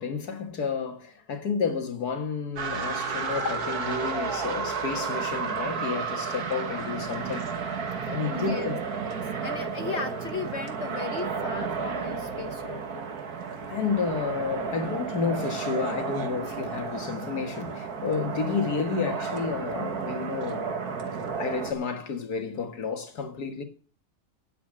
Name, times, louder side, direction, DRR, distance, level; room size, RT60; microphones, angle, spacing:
voice 1, 0.0-7.5 8.1-8.7 13.7-20.9 21.4-23.6, left 5 dB, 80° left, 2.1 m, -31 dB
sound 1, 2.6-21.7, right 5 dB, 75° right, 1.9 m, -32 dB
voice 2, 8.3-8.8 9.4-13.1, left 5 dB, 50° left, 1.1 m, -36 dB
9.9 x 8.3 x 7.4 m
omnidirectional pair, 1.6 m